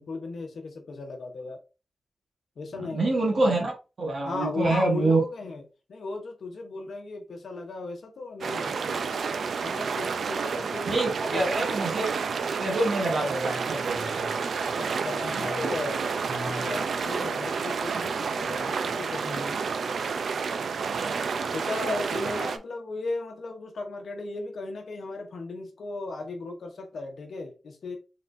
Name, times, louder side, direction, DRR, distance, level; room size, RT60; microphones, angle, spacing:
voice 1, 0.0-1.6 2.6-3.6 4.3-5.6 5.9-9.3 9.6-11.0 11.3-11.5 14.8-16.1 16.5-19.6 21.5-28.0, left 3 dB, 70° left, 0.9 m, -36 dB
voice 2, 2.8-3.7 4.0-5.2 10.9-12.1 12.5-14.4 15.2-15.9 16.3-16.7, right 2 dB, 55° right, 1.3 m, -27 dB
sound 1, 8.4-22.6, right 5 dB, 75° right, 0.4 m, -30 dB
4.2 x 3.6 x 2.6 m
wide cardioid pair, 135°, 0 cm